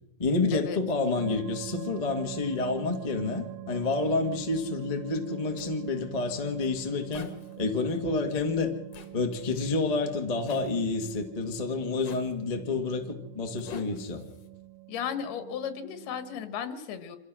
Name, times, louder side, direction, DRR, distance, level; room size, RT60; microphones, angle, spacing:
voice 1, 0.2-7.3 7.6-8.7 9.1-14.2, left 3 dB, 30° left, 3 dB, 0.6 m, -29 dB
sound 1, 1.2-16.5, right 25 dB, 70° right, 2.2 m, -44 dB
Zipper (clothing), 5.6-5.7 7.1-7.6 8.9-9.1 10.4-10.7 12.0-12.3 13.6-14.5, left 5 dB, 55° left, 2.2 m, -45 dB
voice 2, 14.9-17.2, left 8 dB, 90° left, 10 dB, 3.6 m, -35 dB
26.0 x 16.0 x 6.3 m, 1.0 s
omnidirectional pair, 4.4 m